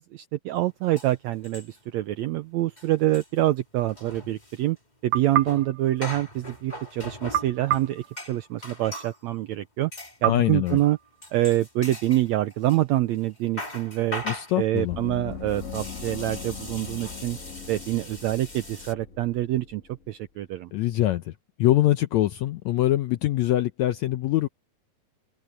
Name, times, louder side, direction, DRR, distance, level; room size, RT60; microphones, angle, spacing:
voice 1, 0.0-4.8 5.0-9.9 10.2-11.0 11.3-14.2 14.6-17.4 17.7-20.7, right 15 dB, 85° right, 1.6 m, -26 dB
sound 1, 0.6-0.7 1.0-2.0 2.2-2.4 2.6-9.2 9.9-10.2 10.7-10.9 11.2-12.8 13.2-18.9, left 1 dB, 15° left, 2.2 m, -40 dB
sound 2, 5.1-6.7 7.3-8.9 10.2-11.6, right 11 dB, 70° right, 2.5 m, -31 dB
voice 2, 10.3-10.8 14.2-15.0 20.7-24.5, left 14 dB, 80° left, 1.6 m, -24 dB
Gong, 14.9-20.1, left 6 dB, 55° left, 0.8 m, -40 dB
open air
omnidirectional pair, 3.9 m